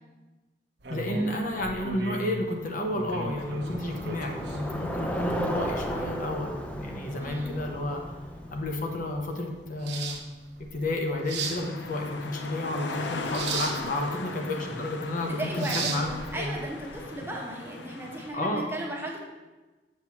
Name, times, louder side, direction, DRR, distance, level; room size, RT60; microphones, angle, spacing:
sound 1, 0.8-17.0, right 4 dB, 70° right, 0.8 m, -38 dB
voice 1, 0.9-8.0 8.5-10.2 10.7-16.5 18.3-18.7, left 1 dB, 50° left, 2 dB, 0.8 m, -31 dB
Bicycle, 3.0-9.5, equal, 10° left, 0.4 m, -35 dB
voice 2, 7.2-7.6 15.3-19.2, right 1 dB, 15° right, -1 dB, 0.9 m, -36 dB
sound 2, 11.4-18.3, left 3 dB, 90° left, 0.6 m, -38 dB
7.5 x 6.0 x 2.9 m, 1.2 s
head